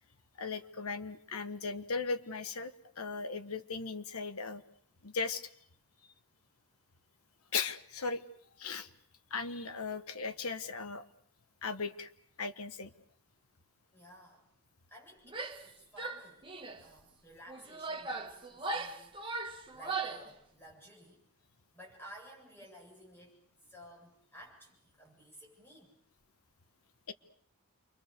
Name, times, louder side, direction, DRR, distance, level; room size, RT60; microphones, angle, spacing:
voice 1, 0.4-2.7 3.0-4.6 5.0-5.5 7.5-8.2 8.6-8.9 9.3-11.0 11.6-12.1 12.4-12.9 27.1-27.2, left 4 dB, 80° left, 9 dB, 1.4 m, -37 dB
voice 2, 13.9-14.4 14.9-16.5 16.8-21.2 21.7-23.4 23.7-25.9, equal, 10° left, -1 dB, 7.7 m, -55 dB
Female speech woman speaking / Yell, 15.3-15.7 16.0-16.8 17.5-20.3, right 3 dB, 20° right, 1.7 m, -39 dB
28.5 x 23.5 x 6.8 m, 0.65 s
head